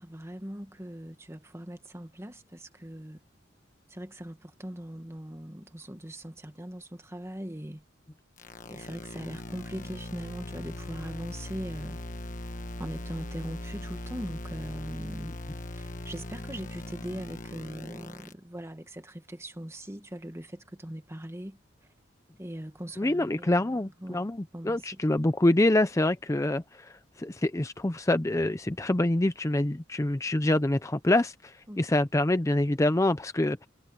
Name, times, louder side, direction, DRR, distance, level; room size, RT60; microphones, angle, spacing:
voice 1, 0.0-3.2 3.9-7.8 8.6-12.0 12.8-15.3 15.8-21.6 22.4-24.3 24.5-25.2 31.7-31.8, equal, 15° right, 1.7 m, -40 dB
sound 1, 8.4-18.3, left 1 dB, 40° left, 1.3 m, -40 dB
voice 2, 23.0-33.7, left 1 dB, 15° left, 0.5 m, -26 dB
head